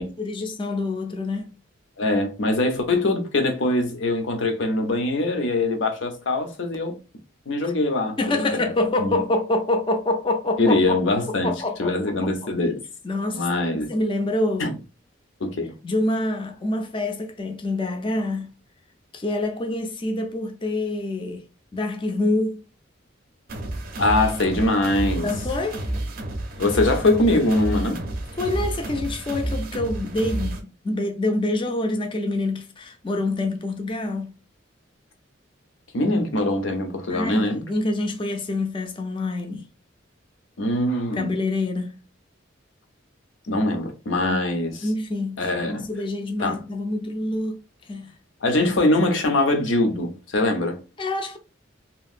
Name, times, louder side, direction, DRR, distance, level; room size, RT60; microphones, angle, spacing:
voice 1, 0.2-1.6 7.6-7.7 8.2-11.0 11.4-12.3 13.0-14.7 15.8-18.5 19.1-21.4 21.7-22.6 25.2-25.9 28.4-34.3 37.1-39.7 41.1-42.0 44.3-44.5 44.8-48.1 51.0-51.4, left 2 dB, 25° left, 0.4 m, -26 dB
voice 2, 2.0-6.9 7.5-8.7 9.0-9.2 10.6-12.8 13.3-13.9 14.6-14.8 15.4-15.7 24.0-25.3 26.6-28.0 35.9-37.6 40.6-41.3 43.5-44.9 45.4-45.9 46.4-46.6 48.4-50.8, left 2 dB, 70° left, 0.7 m, -23 dB
sound 1, 23.5-30.6, right 1 dB, 45° right, 0.5 m, -30 dB
2.9 x 2.5 x 2.4 m
head